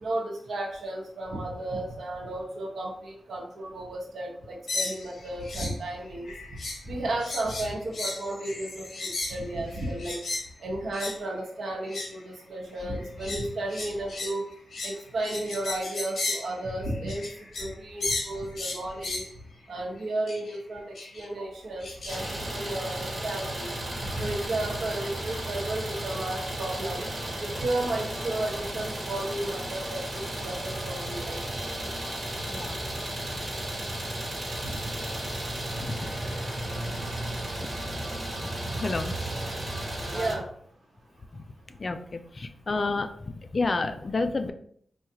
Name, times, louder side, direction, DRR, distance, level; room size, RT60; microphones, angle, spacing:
voice 1, 0.0-6.3 6.9-10.2 10.6-14.5 14.8-17.3 17.6-19.2 19.7-20.8 21.1-23.7 24.1-27.1 27.4-30.1 30.4-31.4 34.6-34.7 40.1-40.5, right 1 dB, 85° right, 0 dB, 0.9 m, -33 dB
sound 1, 4.7-5.8 6.1-6.9 7.2-10.5 10.9-11.2 11.8-12.2 12.8-17.8 18.0-19.3 20.3-20.6 21.0-21.3 21.8-22.3, left 3 dB, 70° left, 0.9 m, -35 dB
Idling, 22.1-40.3, right 1 dB, 35° right, 1.2 m, -34 dB
voice 2, 32.5-32.8 38.8-39.1 41.8-43.1 43.5-44.5, left 3 dB, 40° left, 8 dB, 0.3 m, -29 dB
4.5 x 2.3 x 2.8 m, 0.62 s
wide cardioid pair, 110°, 0 cm